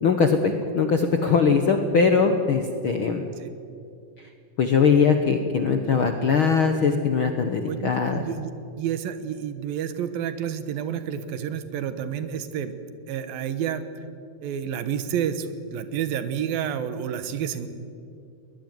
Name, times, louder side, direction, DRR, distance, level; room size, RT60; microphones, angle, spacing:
voice 1, 0.0-3.2 4.6-8.2, left 5 dB, 65° left, 6 dB, 1.3 m, -21 dB
voice 2, 7.7-8.5 8.8-12.8 13.1-13.8 14.4-17.7, right 9 dB, 85° right, 11 dB, 3.1 m, -29 dB
21.5 x 20.0 x 9.5 m, 2.5 s
omnidirectional pair, 4.1 m